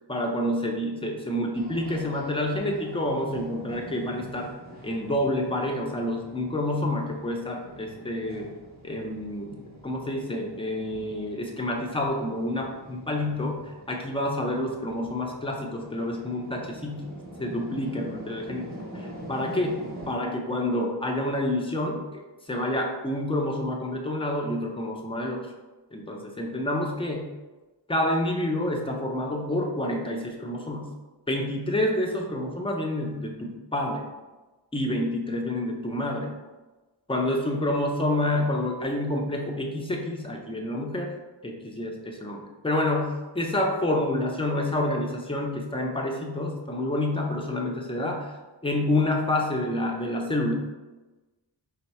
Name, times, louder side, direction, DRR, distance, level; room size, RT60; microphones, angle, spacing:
voice 1, 0.1-4.5 4.8-8.5 8.8-17.1 17.4-18.7 18.9-22.2 22.5-25.4 25.9-27.3 27.9-30.9 31.3-34.0 34.7-36.3 37.1-41.1 41.4-48.3 48.6-50.5, left 1 dB, 15° left, 1 dB, 0.5 m, -28 dB
sound 1, 1.5-20.1, right 1 dB, 20° right, 0.8 m, -44 dB
4.5 x 2.1 x 4.1 m, 1.2 s
wide cardioid pair, 135°, 44 cm